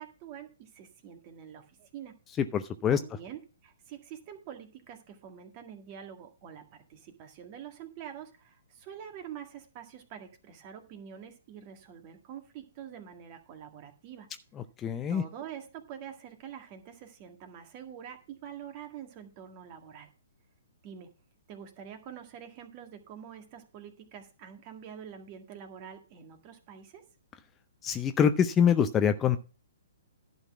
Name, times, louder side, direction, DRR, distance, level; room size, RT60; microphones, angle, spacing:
voice 1, 0.0-2.2 2.9-14.3 15.1-20.1 20.8-21.1 21.5-27.0, right 9 dB, 35° right, 6 dB, 1.8 m, -46 dB
voice 2, 2.5-3.0 14.8-15.2 27.8-29.4, left 8 dB, 20° left, 9 dB, 0.6 m, -24 dB
11.0 x 4.0 x 7.3 m, 0.35 s
hypercardioid pair, 135°, 0 cm